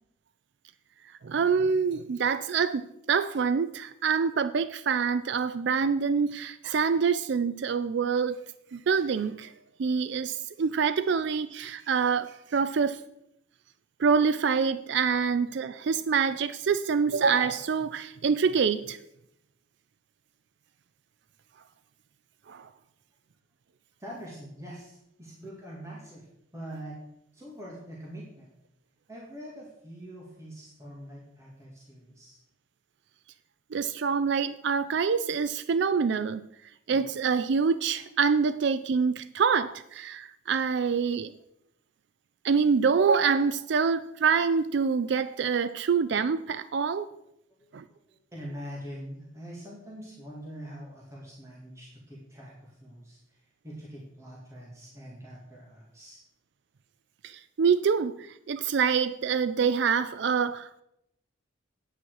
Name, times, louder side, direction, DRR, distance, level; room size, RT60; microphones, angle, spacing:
voice 1, 1.2-8.4 8.7-9.5 9.8-13.0 14.0-19.0 22.5-22.7 33.7-36.4 36.9-41.3 42.4-47.1 47.7-47.8 57.2-60.8, right 6 dB, 60° right, 0.4 m, -26 dB
voice 2, 24.0-26.3 26.5-27.0 27.3-28.5 29.1-32.4 47.6-56.2, equal, 15° right, 2.0 m, -44 dB
9.0 x 8.7 x 4.8 m
head